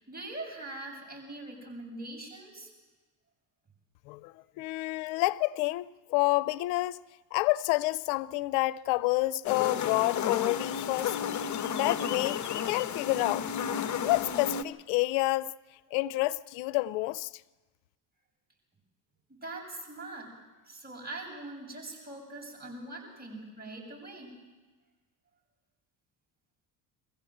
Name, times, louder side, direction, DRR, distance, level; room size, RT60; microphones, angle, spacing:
voice 1, 0.0-2.7 19.4-20.3 20.6-24.3, right 2 dB, 20° right, 7.9 m, -42 dB
voice 2, 4.1-7.0 7.3-11.2 11.8-13.5 14.0-15.5 15.9-17.3, left 19 dB, 85° left, 0.6 m, -29 dB
sound 1, 9.4-14.6, left 8 dB, 40° left, 1.0 m, -32 dB
23.0 x 15.5 x 7.9 m
supercardioid pair, 95°, 44 cm